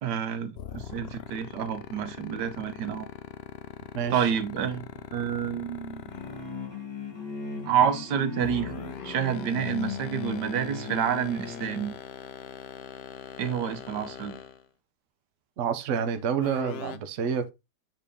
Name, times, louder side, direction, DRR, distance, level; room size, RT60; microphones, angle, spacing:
voice 1, 0.0-3.1 4.1-6.2 7.7-8.7 9.0-11.9 13.4-14.4, right 8 dB, 80° right, 1.4 m, -29 dB
sound 1, 0.6-6.7 8.4-14.7 16.4-17.0, left 9 dB, 75° left, 0.5 m, -41 dB
voice 2, 3.9-4.3 15.6-17.5, right 7 dB, 55° right, 1.0 m, -28 dB
sound 2, 6.1-12.0, left 4 dB, 15° left, 1.5 m, -38 dB
7.4 x 4.1 x 3.6 m
omnidirectional pair, 1.8 m